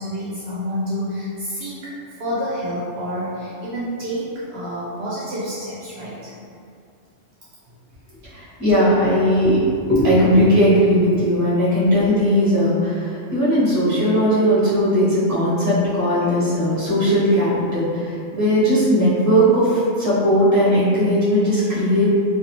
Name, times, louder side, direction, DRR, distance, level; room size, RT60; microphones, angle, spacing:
voice 1, 0.0-6.3 7.7-7.8, equal, 70° right, -8 dB, 0.8 m, -28 dB
voice 2, 8.3-22.1, equal, 15° right, -11 dB, 0.9 m, -18 dB
2.5 x 2.4 x 2.9 m, 2.4 s
omnidirectional pair, 1.2 m